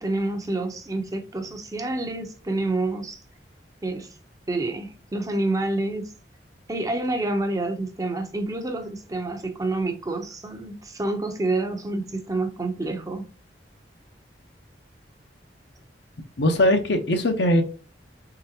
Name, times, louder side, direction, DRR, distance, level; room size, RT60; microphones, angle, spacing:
voice 1, 0.0-3.2 3.8-4.1 4.5-6.1 6.7-13.3, right 2 dB, 20° right, 0.6 m, -28 dB
voice 2, 16.4-17.6, left 1 dB, 70° left, 0.8 m, -20 dB
3.9 x 3.2 x 2.8 m
head